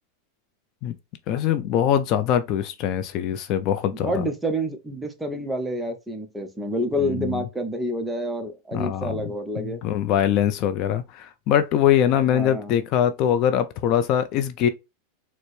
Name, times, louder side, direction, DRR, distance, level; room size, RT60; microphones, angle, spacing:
voice 1, 1.3-4.2 7.0-7.4 8.7-14.7, left 10 dB, 45° left, 0.4 m, -23 dB
voice 2, 3.9-9.8 12.3-12.8, equal, 5° right, 0.6 m, -28 dB
4.3 x 2.0 x 3.1 m
supercardioid pair, 140°, 0 cm